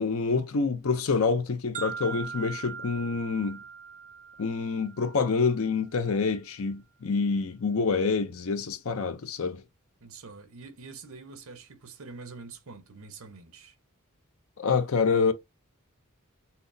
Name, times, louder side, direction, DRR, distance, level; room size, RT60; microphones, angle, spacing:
voice 1, 0.0-3.6 4.4-9.6 14.6-15.3, left 4 dB, 70° left, 0.6 m, -27 dB
sound 1, 1.7-5.7, right 6 dB, 35° right, 0.4 m, -41 dB
voice 2, 10.0-13.8, right 4 dB, 70° right, 0.9 m, -45 dB
5.8 x 2.1 x 2.7 m
head